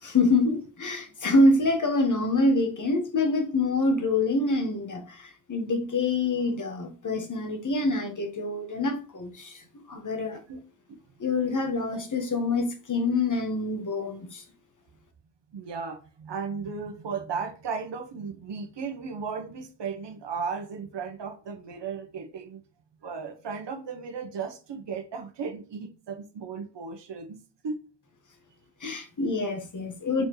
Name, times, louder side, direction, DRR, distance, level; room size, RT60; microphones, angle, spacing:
voice 1, 0.0-9.6 9.9-10.4 11.2-14.4 28.8-30.3, left 2 dB, 40° left, 1.6 m, -26 dB
voice 2, 15.5-22.6 23.0-27.4 27.6-27.8 30.2-30.3, right 5 dB, 60° right, 1.3 m, -35 dB
6.6 x 4.3 x 3.3 m
cardioid pair, 65°, 47 cm